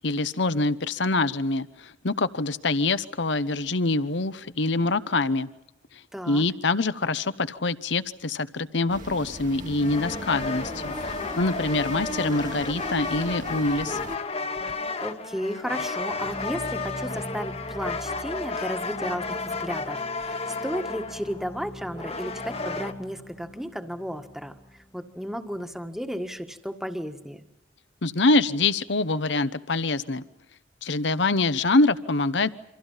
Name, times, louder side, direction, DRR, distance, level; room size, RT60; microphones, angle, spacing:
voice 1, 0.0-5.5 6.3-14.0 28.0-30.2 30.8-32.5, left 3 dB, 65° left, 15 dB, 0.9 m, -25 dB
voice 2, 6.1-6.4 15.0-24.5 24.9-27.4, equal, ahead, 6 dB, 1.6 m, -34 dB
sound 1, 8.9-14.2, right 1 dB, 45° right, 2.2 m, -38 dB
sound 2, 9.8-22.9, left 3 dB, 35° left, 1.4 m, -32 dB
sound 3, 16.1-26.1, left 1 dB, 15° left, 1.1 m, -43 dB
28.5 x 25.5 x 5.6 m, 0.84 s
head